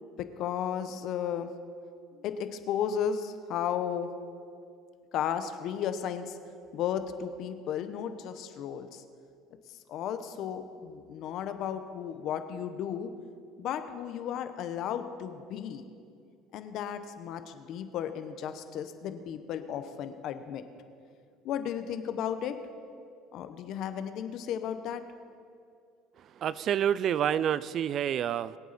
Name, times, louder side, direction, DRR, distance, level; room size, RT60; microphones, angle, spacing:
voice 1, 0.2-1.5 2.1-4.1 5.1-6.4 6.7-9.0 9.9-13.1 13.6-15.8 16.5-20.6 21.4-22.6 23.3-25.0, left 9 dB, 55° left, 9 dB, 1.0 m, -34 dB
voice 2, 26.4-28.6, right 9 dB, 45° right, 18 dB, 0.3 m, -28 dB
22.5 x 8.2 x 4.2 m, 2.3 s
cardioid pair, 120°, 0 cm